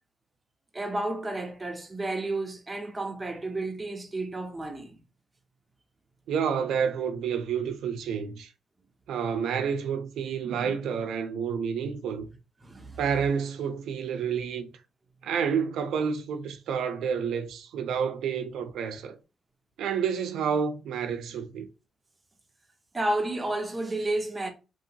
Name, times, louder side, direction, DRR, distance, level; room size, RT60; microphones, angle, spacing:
voice 1, 0.7-5.0 12.6-13.0 22.9-24.5, right 2 dB, 20° right, 0.7 m, -31 dB
voice 2, 6.3-8.5 9.1-12.3 13.0-14.7 15.2-19.1 19.8-21.7, right 7 dB, 85° right, 0.5 m, -29 dB
2.9 x 2.7 x 2.7 m
cardioid pair, 95°, 0 cm